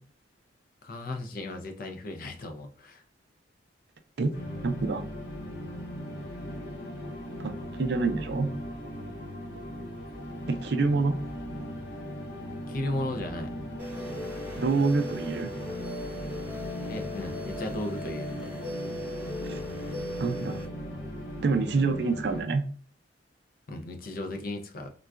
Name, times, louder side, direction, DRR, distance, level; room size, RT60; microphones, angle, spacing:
voice 1, 0.8-3.0 12.7-13.5 16.9-18.6 23.7-24.9, left 1 dB, 50° left, 0.5 m, -35 dB
sound 1, 4.3-22.4, equal, 70° left, 1.0 m, -38 dB
voice 2, 4.6-5.0 7.4-8.5 10.5-11.2 14.6-15.5 19.4-19.6 20.2-20.6 21.4-22.6, right 4 dB, 65° right, 0.4 m, -27 dB
sound 2, 13.8-20.6, left 1 dB, 10° right, 0.7 m, -39 dB
3.8 x 2.3 x 2.2 m
head